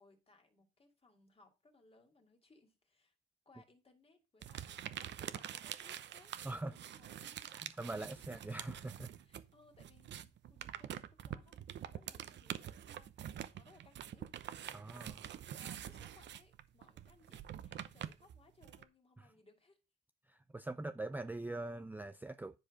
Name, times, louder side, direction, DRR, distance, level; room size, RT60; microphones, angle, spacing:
voice 1, 0.0-3.1 3.5-7.6 9.2-14.3 15.6-19.8, left 3 dB, 30° left, 2.5 m, -66 dB
sound 1, 4.4-9.5 9.7-18.8, right 10 dB, 65° right, 0.8 m, -46 dB
voice 2, 6.4-6.8 7.8-9.1 14.7-15.3 20.3-22.6, right 2 dB, 10° right, 0.5 m, -42 dB
10.5 x 4.8 x 5.0 m
cardioid pair, 90°, 20 cm